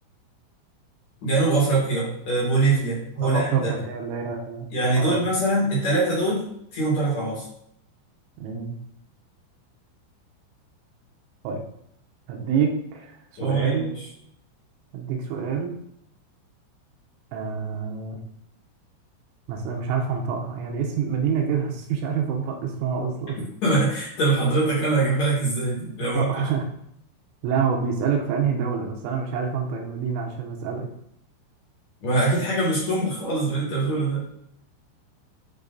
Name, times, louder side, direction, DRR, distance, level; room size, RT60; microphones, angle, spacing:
voice 1, 1.2-3.7 4.7-6.5 6.7-7.4 13.4-13.9 23.6-26.4 32.0-34.3, right 2 dB, 45° left, -6 dB, 2.6 m, -23 dB
voice 2, 3.2-4.7 5.0-5.2 8.4-8.8 11.4-11.6 12.3-13.2 13.4-14.0 14.9-15.7 17.3-18.2 19.5-23.4 26.1-26.6 27.4-30.9, right 6 dB, 80° right, 1 dB, 3.4 m, -27 dB
9.6 x 3.2 x 3.9 m, 0.73 s
omnidirectional pair, 5.7 m